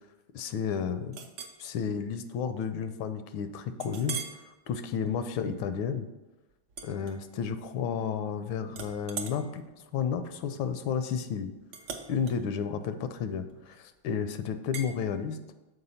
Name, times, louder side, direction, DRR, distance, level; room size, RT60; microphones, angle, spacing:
voice 1, 0.3-1.2 1.6-4.2 4.4-6.1 6.8-9.6 9.9-11.5 12.1-15.4, left 7 dB, 80° left, 10 dB, 1.3 m, -32 dB
Chink clink, 1.1-1.6 2.1-2.3 2.8-2.9 3.8-4.4 5.0-5.2 6.7-7.7 8.0-8.4 8.7-13.8 14.7-14.9, right 7 dB, 80° right, 0.6 m, -42 dB
6.7 x 4.6 x 5.6 m, 1.0 s
omnidirectional pair, 2.2 m